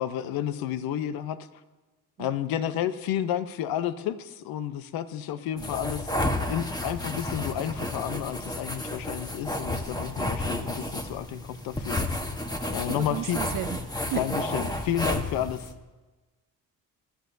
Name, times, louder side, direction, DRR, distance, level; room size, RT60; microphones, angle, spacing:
voice 1, 0.0-1.4 2.2-6.2 6.5-12.0 12.7-13.4 14.2-15.7, left 10 dB, 75° left, 13 dB, 0.8 m, -31 dB
sound 1, 5.6-15.7, left 1 dB, 10° left, 1.1 m, -31 dB
voice 2, 12.9-13.8 14.1-14.2, right 14 dB, 65° right, 8 dB, 0.7 m, -33 dB
19.5 x 11.5 x 2.6 m, 1.2 s
supercardioid pair, 70°, 36 cm